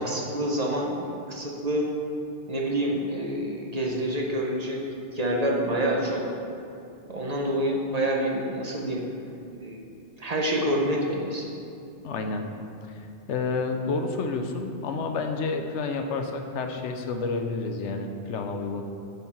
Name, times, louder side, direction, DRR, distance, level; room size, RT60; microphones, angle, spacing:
voice 1, 0.0-1.9 2.5-4.8 5.1-6.2 7.1-9.0 9.6-9.9 10.2-11.5, right 1 dB, 40° right, -1 dB, 0.9 m, -27 dB
voice 2, 12.0-12.5 12.9-18.8, left 4 dB, 90° left, 5 dB, 1.0 m, -30 dB
8.1 x 4.5 x 5.8 m, 2.7 s
omnidirectional pair, 1.2 m